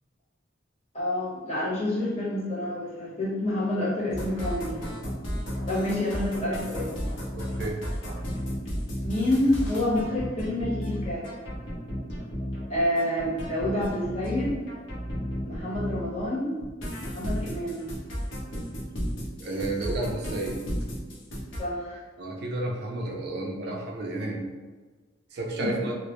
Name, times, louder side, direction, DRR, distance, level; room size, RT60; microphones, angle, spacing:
voice 1, 0.9-4.9 5.7-7.0 9.0-11.2 12.7-14.5 15.4-16.6 17.0-17.9 21.6-22.0 25.6-25.7, left 1 dB, 35° left, -8 dB, 0.9 m, -28 dB
sound 1, 4.1-16.3 16.6-21.6, equal, 75° left, 0.6 m, -33 dB
voice 2, 7.3-7.8 19.4-20.6 22.2-24.5 25.3-25.9, right 2 dB, 60° right, 0 dB, 0.4 m, -31 dB
2.0 x 2.0 x 2.9 m, 1.3 s
head